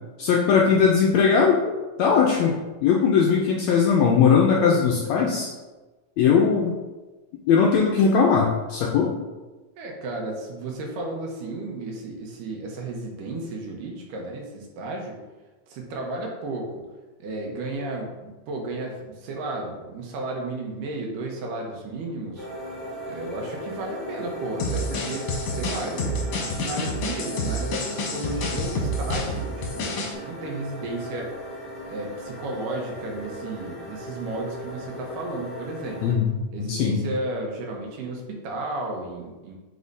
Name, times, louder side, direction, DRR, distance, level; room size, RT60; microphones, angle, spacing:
voice 1, 0.2-1.6 2.0-2.5 2.8-5.5 6.2-6.7 7.5-9.1 36.0-36.3 36.6-37.0, left 6 dB, 85° left, -1 dB, 1.6 m, -19 dB
voice 2, 9.8-15.2 15.7-16.8 17.2-22.5 23.1-31.3 31.9-36.0 36.5-39.5, right 2 dB, 85° right, 0 dB, 2.6 m, -33 dB
sound 1, 22.3-36.1, equal, 50° left, 0.5 m, -37 dB
sound 2, 24.6-30.1, left 1 dB, 65° left, 1.7 m, -29 dB
8.5 x 4.2 x 2.7 m, 1.2 s
omnidirectional pair, 3.7 m